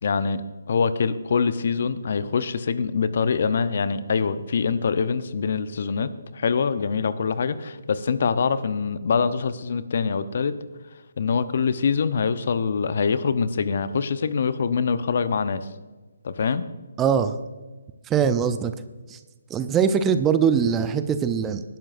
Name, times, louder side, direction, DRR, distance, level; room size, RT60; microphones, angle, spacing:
voice 1, 0.0-10.5 11.2-15.7 16.2-16.7, left 5 dB, 55° left, 13 dB, 0.8 m, -24 dB
voice 2, 17.0-17.4 18.1-18.7 19.1-19.2 19.5-21.6, right 7 dB, 15° right, 11 dB, 0.5 m, -22 dB
19.0 x 11.0 x 2.6 m, 1.2 s
figure-of-eight pair, 145°, 0 cm